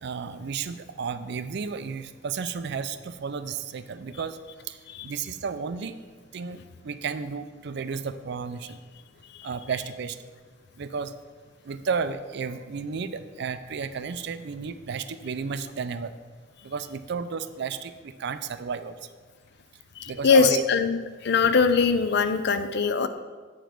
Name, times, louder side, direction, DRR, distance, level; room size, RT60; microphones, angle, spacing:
voice 1, 0.0-4.4 4.7-6.0 6.3-8.8 9.4-10.2 10.8-11.2 11.6-16.1 16.6-19.0 20.1-20.6, right 5 dB, 60° right, 12 dB, 0.4 m, -32 dB
voice 2, 20.0-23.1, left 5 dB, 60° left, 10 dB, 0.5 m, -22 dB
8.0 x 5.1 x 5.8 m, 1.4 s
head